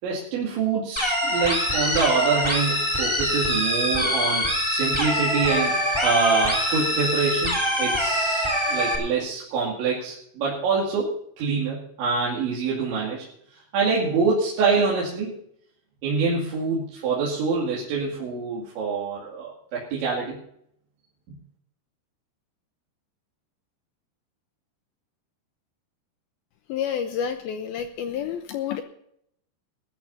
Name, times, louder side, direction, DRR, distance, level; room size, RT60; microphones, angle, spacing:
voice 1, 0.0-5.7 6.0-13.3 13.7-15.3 16.0-20.4 21.3-21.4, right 4 dB, 80° right, -5 dB, 4.8 m, -25 dB
sound 1, 1.0-9.0, equal, 5° left, 2.6 m, -24 dB
voice 2, 26.7-28.8, left 8 dB, 80° left, 7 dB, 2.3 m, -29 dB
20.5 x 13.5 x 2.7 m, 0.71 s
omnidirectional pair, 5.2 m